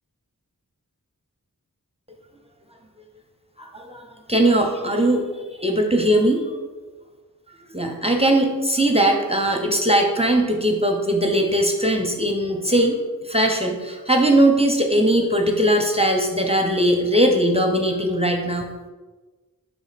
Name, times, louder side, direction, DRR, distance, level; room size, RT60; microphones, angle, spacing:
voice 1, 3.6-5.2 5.6-6.4 7.7-13.0 13.2-18.7, right 1 dB, 15° right, 2 dB, 0.7 m, -20 dB
5.8 x 4.1 x 4.1 m, 1.3 s
wide cardioid pair, 55°, 35 cm